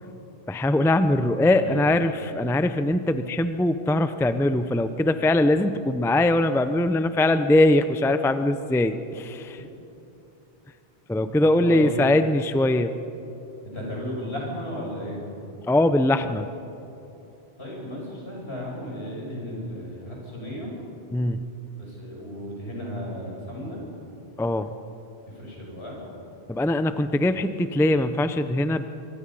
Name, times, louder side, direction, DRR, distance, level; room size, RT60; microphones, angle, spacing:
voice 1, 0.5-9.6 11.1-12.9 15.7-16.5 21.1-21.4 24.4-24.7 26.5-28.9, left 1 dB, 5° left, 10 dB, 0.5 m, -22 dB
voice 2, 1.4-1.9 11.6-12.0 13.6-15.2 17.6-20.7 21.8-23.8 25.3-26.0, equal, 75° left, -3 dB, 6.4 m, -34 dB
25.5 x 23.0 x 5.5 m, 2.8 s
omnidirectional pair, 1.1 m